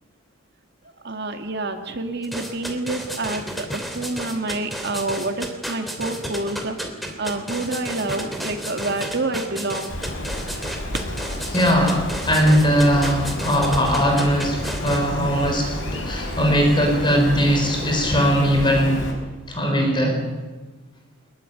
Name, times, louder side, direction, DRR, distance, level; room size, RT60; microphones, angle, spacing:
voice 1, 1.0-6.7 7.2-10.0, right 2 dB, 50° right, 5 dB, 2.2 m, -28 dB
sound 1, 2.2-15.0, equal, ahead, 3.0 m, -32 dB
Bird, 9.9-19.1, left 1 dB, 60° left, 5.9 m, -31 dB
voice 2, 11.5-19.1 19.5-20.3, equal, 20° left, 2 dB, 4.7 m, -20 dB
23.0 x 22.0 x 9.2 m, 1.3 s
head